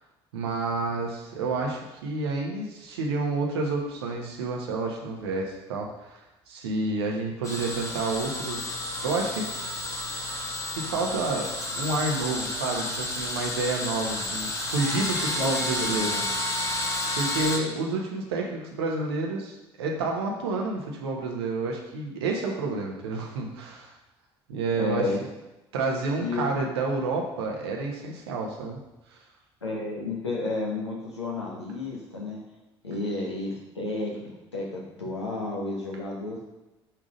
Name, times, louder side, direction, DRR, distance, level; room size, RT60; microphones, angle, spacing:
voice 1, 0.3-8.7 9.0-9.5 10.7-11.5 11.8-16.2 17.1-23.9 24.5-25.1 25.7-28.8, right 3 dB, 70° right, 0 dB, 1.1 m, -29 dB
sound 1, 7.4-17.6, left 1 dB, 20° left, 1.4 m, -31 dB
voice 2, 15.4-16.3 24.8-25.2 26.2-26.6 29.6-32.4 32.8-36.4, left 2 dB, 85° left, -3 dB, 1.2 m, -32 dB
5.6 x 3.8 x 5.1 m, 1.0 s
figure-of-eight pair, 55°, 14 cm